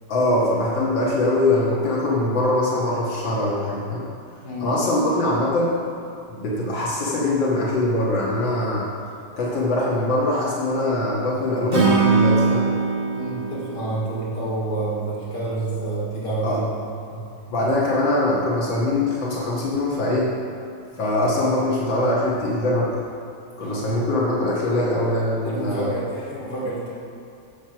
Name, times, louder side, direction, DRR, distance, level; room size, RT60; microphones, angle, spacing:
voice 1, 0.1-4.1 4.6-5.7 6.3-8.8 9.4-12.7 16.4-16.6 17.5-20.3 21.0-22.9 23.6-25.9, left 1 dB, 80° left, -5 dB, 2.3 m, -22 dB
voice 2, 4.4-4.9 13.1-16.8 17.1-17.2 23.6-23.9 25.4-26.9, right 2 dB, 65° left, -7 dB, 3.3 m, -28 dB
Acoustic guitar / Strum, 11.7-15.0, right 4 dB, 75° right, 2.9 m, -22 dB
11.0 x 7.8 x 5.9 m, 2.5 s
omnidirectional pair, 2.0 m